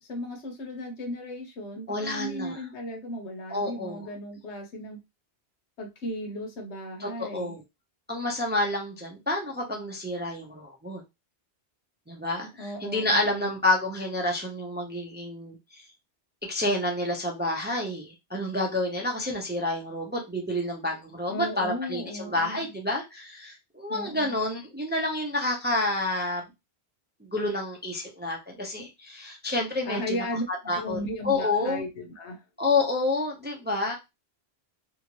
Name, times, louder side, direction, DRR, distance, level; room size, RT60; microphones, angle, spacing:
voice 1, 0.0-5.0 5.8-7.6 12.6-13.5 21.3-22.6 23.9-24.3 29.8-30.5 30.7-32.4, equal, 85° left, 1.1 m, -36 dB
voice 2, 1.9-2.5 3.5-4.1 7.0-7.6 8.1-11.0 12.1-15.8 16.4-26.4 27.2-30.2 30.5-31.0 31.2-31.8 32.6-33.9, left 2 dB, 15° right, 0.4 m, -29 dB
2.8 x 2.5 x 2.9 m
omnidirectional pair, 1.1 m